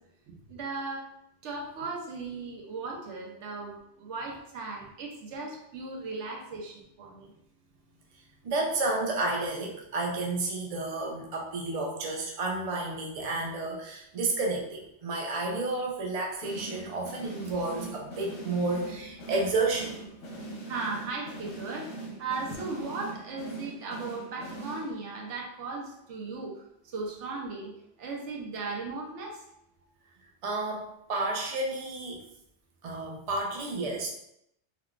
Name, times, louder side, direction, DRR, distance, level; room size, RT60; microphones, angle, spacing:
voice 1, 0.5-1.1 1.4-7.3 20.7-27.7 28.0-29.4, right 3 dB, 75° right, 0 dB, 1.0 m, -37 dB
voice 2, 8.4-20.0 30.4-32.2 32.8-34.1, right 2 dB, 45° right, -1 dB, 0.5 m, -31 dB
sound 1, 16.4-25.2, right 2 dB, 90° left, 1.2 m, -42 dB
3.6 x 2.3 x 2.3 m, 0.77 s
omnidirectional pair, 1.2 m